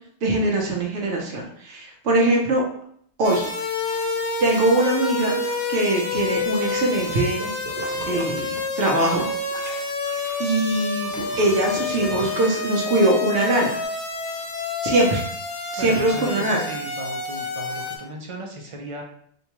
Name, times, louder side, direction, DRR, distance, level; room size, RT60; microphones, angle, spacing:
voice 1, 0.2-2.6 3.2-3.5 4.4-5.4 5.7-7.5 8.1-9.2 10.4-13.8 14.8-15.2 15.7-16.6, right 2 dB, 90° right, -2 dB, 1.0 m, -22 dB
sound 1, 3.2-18.0, left 3 dB, 90° left, 0.9 m, -28 dB
Piano, 5.0-6.9, left 1 dB, 35° left, 0.5 m, -44 dB
sound 2, 6.3-10.4 10.7-13.2 13.6-13.7, right 2 dB, 65° right, 1.1 m, -38 dB
voice 2, 15.8-19.0, right 1 dB, 45° right, 1 dB, 0.4 m, -36 dB
3.9 x 2.2 x 2.9 m, 0.66 s
omnidirectional pair, 1.2 m